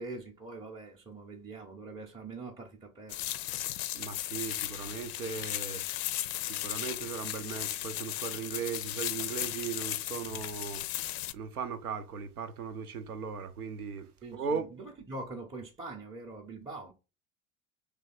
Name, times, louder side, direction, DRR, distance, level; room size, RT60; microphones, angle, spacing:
voice 1, 0.0-3.3 14.2-16.9, right 3 dB, 10° right, 0.7 m, -43 dB
sound 1, 3.1-11.3, left 14 dB, 50° left, 0.5 m, -36 dB
voice 2, 3.9-5.8 6.4-10.9 11.3-14.7, right 6 dB, 75° right, 0.7 m, -38 dB
3.2 x 3.0 x 4.2 m
figure-of-eight pair, 70°, 44 cm